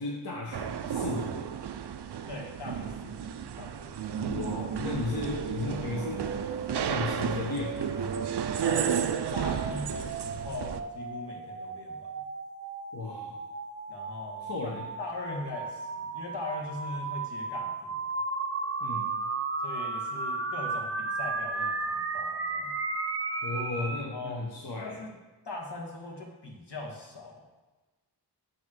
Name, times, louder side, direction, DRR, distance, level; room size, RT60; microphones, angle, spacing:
voice 1, 0.0-1.5 4.2-6.3 6.8-7.9 12.9-13.4 14.4-14.9 18.8-19.1 23.4-25.0, left 3 dB, 65° left, -2 dB, 1.0 m, -35 dB
sound 1, 0.5-10.8, right 8 dB, 75° right, 0.5 m, -33 dB
voice 2, 2.3-3.3 3.6-4.1 8.6-12.2 13.9-14.7 15.0-18.0 19.6-22.8 24.1-24.5 24.8-25.1 25.4-27.6, left 2 dB, 80° left, -1 dB, 1.5 m, -40 dB
sound 2, 5.1-24.0, right 3 dB, 35° right, 0.7 m, -35 dB
8.4 x 3.1 x 6.1 m, 1.2 s
wide cardioid pair, 75°, 40 cm